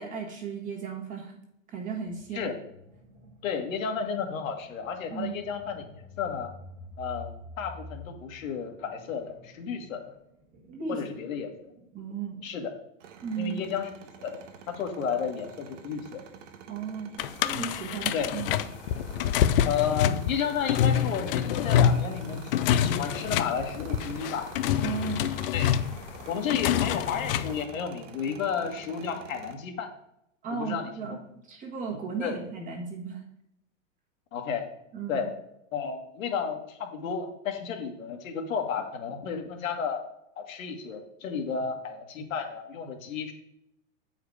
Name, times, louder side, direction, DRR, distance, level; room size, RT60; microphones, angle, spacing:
voice 1, 0.0-1.4 1.7-2.5 5.1-5.4 10.7-11.0 11.9-12.4 13.2-13.6 16.7-18.6 24.8-25.3 30.4-31.2 31.5-33.2 34.9-35.3, right 6 dB, 20° right, 1 dB, 1.4 m, -35 dB
sound 1, 2.1-12.5, left 2 dB, 35° right, 1.8 m, -49 dB
voice 2, 3.4-6.5 7.0-10.1 10.9-11.5 12.4-12.7 13.4-13.9 14.2-16.2 18.1-18.3 19.6-24.5 25.5-25.7 26.3-29.9 30.5-31.2 32.2-32.4 34.3-34.6 35.1-35.3 35.7-40.0 40.4-43.3, left 6 dB, 85° left, 3 dB, 1.8 m, -32 dB
sound 2, 13.0-29.5, right 8 dB, 65° right, 1.1 m, -47 dB
sound 3, 17.2-27.6, left 9 dB, 45° left, 0.4 m, -26 dB
8.3 x 4.9 x 4.8 m, 0.79 s
supercardioid pair, 160°, 39 cm